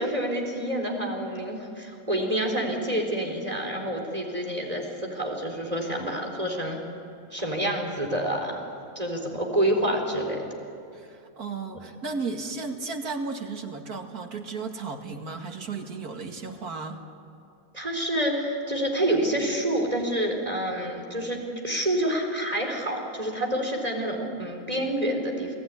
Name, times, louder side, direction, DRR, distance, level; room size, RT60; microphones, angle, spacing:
voice 1, 0.0-6.8 7.3-8.6 9.0-10.5 17.7-25.5, right 1 dB, 25° right, 1 dB, 4.4 m, -28 dB
voice 2, 10.9-17.0, right 4 dB, 85° right, 4 dB, 2.6 m, -34 dB
30.0 x 19.5 x 10.0 m, 2.5 s
omnidirectional pair, 1.6 m